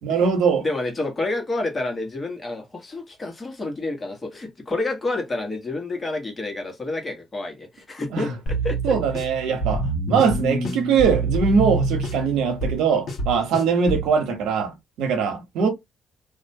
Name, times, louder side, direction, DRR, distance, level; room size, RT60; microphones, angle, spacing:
voice 1, 0.0-0.6 8.1-8.3 8.8-9.8 10.1-15.7, right 6 dB, 90° right, 0.8 m, -21 dB
voice 2, 0.6-9.0, left 2 dB, 25° left, 1.1 m, -29 dB
sound 1, 8.5-14.1, right 2 dB, 65° left, 1.3 m, -26 dB
2.6 x 2.1 x 2.6 m
cardioid pair, 90°, 0 cm